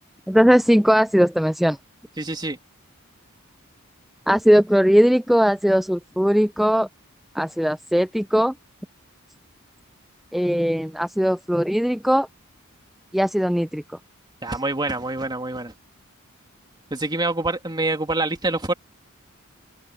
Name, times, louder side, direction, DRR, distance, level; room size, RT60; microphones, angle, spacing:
voice 1, 0.3-1.8 4.3-6.9 7.4-8.5 10.3-12.3 13.1-13.8, equal, ahead, 0.3 m, -19 dB
voice 2, 2.2-2.6 14.4-15.7 16.9-18.7, right 2 dB, 20° right, 2.6 m, -26 dB
open air
head